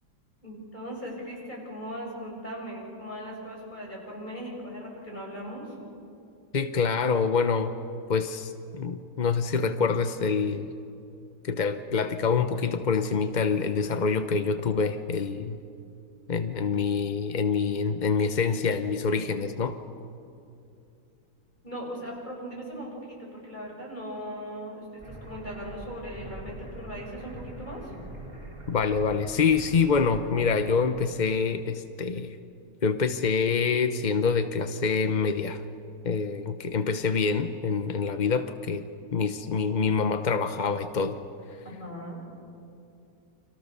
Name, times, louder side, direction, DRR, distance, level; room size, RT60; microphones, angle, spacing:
voice 1, 0.4-5.9 21.6-28.0 41.6-42.2, equal, 25° left, -2 dB, 7.3 m, -39 dB
voice 2, 6.5-7.7 8.1-10.7 11.4-15.6 16.3-19.8 28.7-32.4 32.8-35.6 36.0-38.9 39.1-41.2, left 5 dB, 45° left, 9 dB, 0.5 m, -26 dB
sound 1, 25.0-31.4, right 2 dB, 15° right, 4.3 m, -43 dB
30.0 x 26.0 x 6.8 m, 2.6 s
omnidirectional pair, 2.0 m